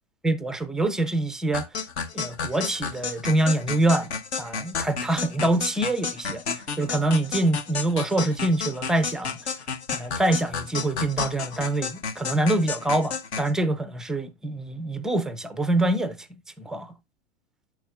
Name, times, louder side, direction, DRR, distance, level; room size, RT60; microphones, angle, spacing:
voice 1, 0.2-1.7 2.1-6.4 6.8-9.4 9.9-16.2 16.6-16.9, right 2 dB, ahead, 0.3 m, -25 dB
sound 1, 1.5-13.5, left 5 dB, 75° left, 1.0 m, -31 dB
9.3 x 6.2 x 2.4 m
figure-of-eight pair, 95°, 33 cm